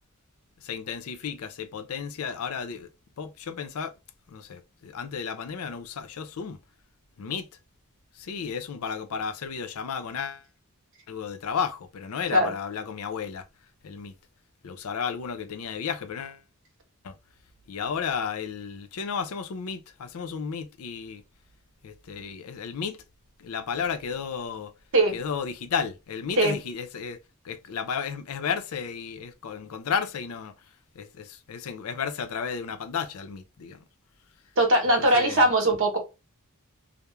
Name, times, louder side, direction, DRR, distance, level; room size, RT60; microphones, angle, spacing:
voice 1, 0.6-2.9 3.2-3.9 4.3-6.6 7.2-7.5 8.2-10.4 11.1-13.4 13.8-14.1 14.6-16.4 17.0-17.1 17.7-21.2 21.8-23.0 23.4-24.7 25.1-27.2 27.4-30.5 31.0-33.8 35.0-35.4, left 6 dB, 70° left, 0.4 m, -33 dB
voice 2, 34.6-36.0, right 1 dB, 60° right, 0.9 m, -20 dB
2.3 x 2.0 x 3.0 m
head